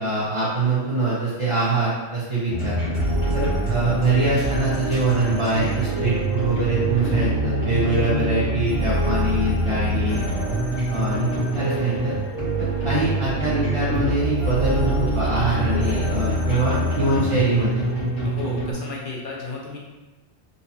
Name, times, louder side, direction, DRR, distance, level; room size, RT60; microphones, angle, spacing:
voice 1, 0.0-2.8 3.3-10.2 10.9-11.3 11.5-12.1 12.8-17.7, right 2 dB, 35° right, -8 dB, 0.6 m, -24 dB
sound 1, 2.5-18.7, right 1 dB, 75° left, 1.6 m, -24 dB
voice 2, 15.7-16.2 16.5-16.8 18.2-19.8, left 3 dB, 55° left, -3 dB, 0.9 m, -34 dB
3.9 x 2.8 x 2.7 m, 1.2 s
omnidirectional pair, 1.2 m